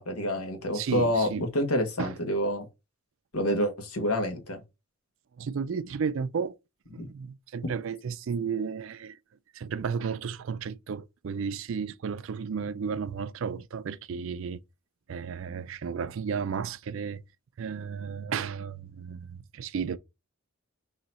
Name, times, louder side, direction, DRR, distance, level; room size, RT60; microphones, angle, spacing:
voice 1, 0.0-2.6 3.3-4.6 7.0-7.1, equal, 80° left, 1.3 m, -28 dB
voice 2, 0.7-1.5 2.0-2.2 5.4-6.6 6.9-9.2 9.5-14.6 15.1-17.2 17.6-20.0, right 6 dB, 60° right, 0.4 m, -33 dB
3.9 x 2.8 x 4.2 m
head